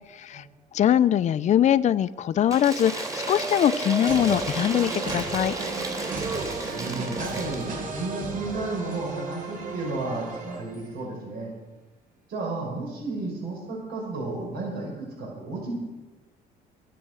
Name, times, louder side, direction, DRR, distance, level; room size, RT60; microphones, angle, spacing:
voice 1, 0.1-0.4 0.7-5.5, left 10 dB, 45° left, 14 dB, 0.6 m, -22 dB
Cheering / Applause / Crowd, 2.5-7.7, right 2 dB, 20° right, 3.3 m, -32 dB
sound 1, 4.1-11.0, right 3 dB, 50° right, 3.2 m, -35 dB
voice 2, 6.6-11.5 12.3-15.7, right 3 dB, 70° right, -1 dB, 6.2 m, -32 dB
23.0 x 7.8 x 6.4 m, 1.2 s
cardioid pair, 110°, 17 cm